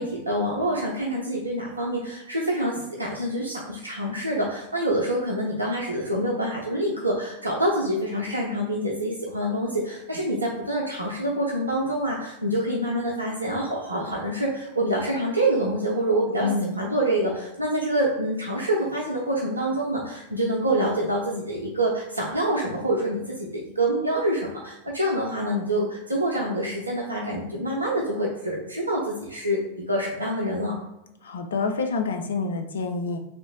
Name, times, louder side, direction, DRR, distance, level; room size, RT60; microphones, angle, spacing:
voice 1, 0.0-16.5 16.8-30.7, right 1 dB, 80° right, -3 dB, 0.5 m, -26 dB
voice 2, 16.4-16.8 31.2-33.2, left 4 dB, 65° left, 5 dB, 0.4 m, -27 dB
3.0 x 2.5 x 3.7 m, 0.92 s
figure-of-eight pair, 90°, 0 cm